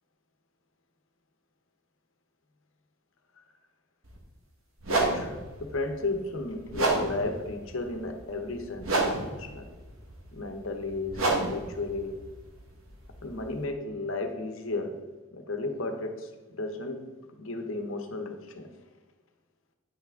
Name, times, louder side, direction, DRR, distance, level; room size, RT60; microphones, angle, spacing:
sound 1, 4.0-4.2 4.8-13.6, right 2 dB, 75° right, 1.4 m, -31 dB
voice 1, 4.9-9.7 10.3-11.2 11.5-12.2 13.2-15.0 15.3-16.3 16.6-17.0 17.4-18.7, left 2 dB, 70° left, 5 dB, 1.0 m, -34 dB
9.6 x 5.9 x 3.7 m, 1.3 s
head